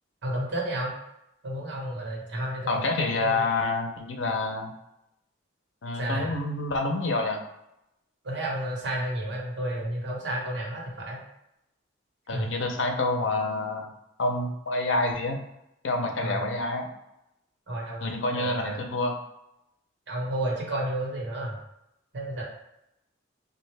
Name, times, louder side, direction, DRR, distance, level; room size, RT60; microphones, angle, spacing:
voice 1, 0.2-0.9 1.4-2.8 3.2-3.4 5.9-6.3 8.2-11.2 12.3-12.5 16.2-16.4 17.7-18.8 20.1-21.6 22.1-22.4, right 1 dB, 70° right, -2 dB, 1.1 m, -31 dB
voice 2, 2.7-4.7 5.8-7.4 12.3-13.9 14.2-15.4 15.8-16.9 18.0-19.1, left 2 dB, 90° left, 3 dB, 0.6 m, -27 dB
3.6 x 2.5 x 3.2 m, 0.85 s
head